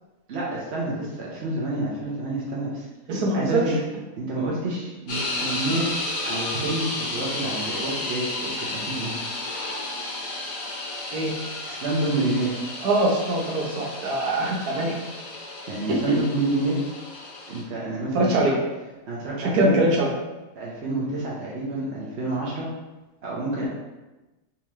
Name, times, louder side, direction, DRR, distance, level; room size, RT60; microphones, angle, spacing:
voice 1, 0.3-2.9 3.3-3.7 4.2-9.1 11.7-12.6 15.7-16.8 17.5-18.5 19.1-19.8 20.6-22.7 23.2-23.7, right 2 dB, 55° right, -6 dB, 0.8 m, -28 dB
voice 2, 3.1-3.6 11.1-11.3 12.8-14.9 15.9-16.2 18.1-18.6 19.4-20.1, right 1 dB, 75° right, -2 dB, 1.1 m, -22 dB
sound 1, 5.1-17.6, left 2 dB, 70° left, 1.5 m, -32 dB
3.5 x 2.9 x 3.0 m, 1.1 s
omnidirectional pair, 1.7 m